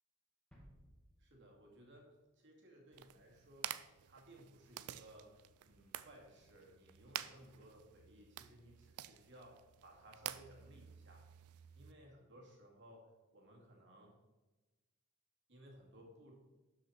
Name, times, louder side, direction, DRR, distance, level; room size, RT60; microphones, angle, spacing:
sound 1, 0.5-2.3 2.6-2.7, equal, 5° left, 1.5 m, -64 dB
voice 1, 1.2-3.8 4.0-11.3 11.7-14.1 15.5-16.4, right 1 dB, 55° right, -1 dB, 2.4 m, -60 dB
sound 2, 2.9-11.9, right 12 dB, 90° right, 0.4 m, -50 dB
12.0 x 5.5 x 4.4 m, 1.1 s
head